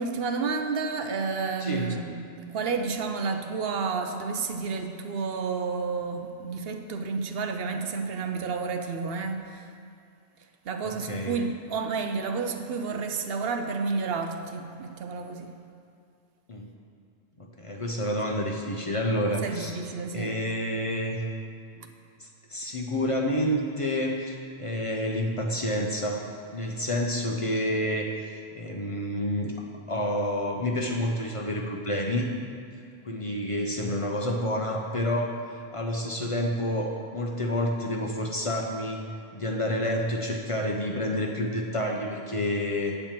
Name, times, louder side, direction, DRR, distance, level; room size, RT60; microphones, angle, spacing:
voice 1, 0.0-9.7 10.6-15.6 19.4-20.3, right 4 dB, 70° right, 6 dB, 0.8 m, -31 dB
voice 2, 1.6-1.9 10.8-11.4 16.5-16.7 17.4-19.8 20.1-21.2 22.2-26.3 26.5-29.5 29.9-32.3 33.0-39.0 39.3-42.9, left 1 dB, 35° left, 0 dB, 0.6 m, -29 dB
8.8 x 4.4 x 7.3 m, 2.3 s
omnidirectional pair, 1.1 m